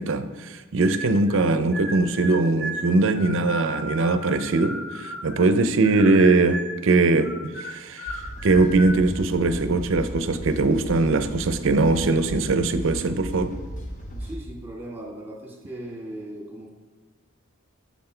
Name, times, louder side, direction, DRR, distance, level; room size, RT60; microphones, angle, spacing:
voice 1, 0.0-7.3 7.6-8.2 8.4-13.6, right 3 dB, 65° right, 10 dB, 0.5 m, -21 dB
sound 1, 0.8-1.4 1.7-5.5 5.8-6.8 7.2-9.0, equal, 55° left, 2.0 m, -35 dB
sound 2, 8.1-14.4, equal, 35° left, 0.9 m, -36 dB
voice 2, 14.2-16.7, right 1 dB, 10° right, -2 dB, 1.6 m, -38 dB
7.1 x 5.8 x 4.4 m, 1.4 s
head